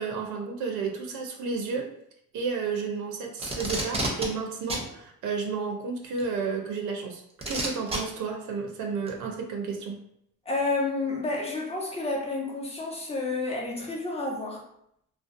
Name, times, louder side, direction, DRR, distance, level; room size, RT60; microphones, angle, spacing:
voice 1, 0.0-1.9 2.3-7.2 7.5-10.0, right 5 dB, 75° right, 2 dB, 0.5 m, -32 dB
Packing tape duct tape, 3.4-4.3 4.7-4.9 6.2-6.3 7.4-8.0 9.1-9.2, right 2 dB, 20° right, 0.6 m, -29 dB
voice 2, 10.5-14.6, left 3 dB, 20° left, -2 dB, 0.7 m, -30 dB
2.5 x 2.1 x 2.5 m, 0.75 s
cardioid pair, 90°, 30 cm